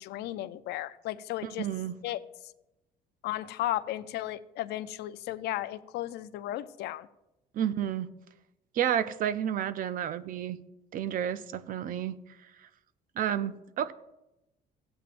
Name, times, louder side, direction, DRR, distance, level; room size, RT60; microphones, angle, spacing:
voice 1, 0.0-1.7 2.0-2.2 3.2-7.1, left 14 dB, 80° left, 13 dB, 0.5 m, -34 dB
voice 2, 1.4-2.0 7.5-8.1 8.7-10.6 10.9-12.2 13.2-13.9, right 10 dB, 55° right, 14 dB, 0.6 m, -31 dB
16.0 x 8.9 x 2.5 m, 0.91 s
cardioid pair, 110°, 17 cm